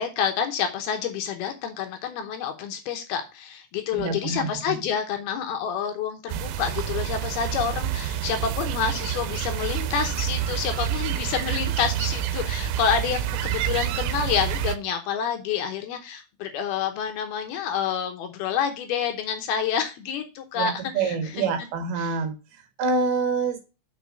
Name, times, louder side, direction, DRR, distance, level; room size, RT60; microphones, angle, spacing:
voice 1, 0.0-21.5 22.0-22.2, left 7 dB, 75° left, 6 dB, 2.6 m, -28 dB
voice 2, 3.9-4.5 20.6-22.3 22.8-23.6, right 4 dB, 70° right, 6 dB, 3.3 m, -26 dB
sound 1, 6.3-14.8, right 11 dB, 90° right, 3.0 m, -28 dB
6.2 x 5.5 x 6.2 m, 0.29 s
omnidirectional pair, 4.9 m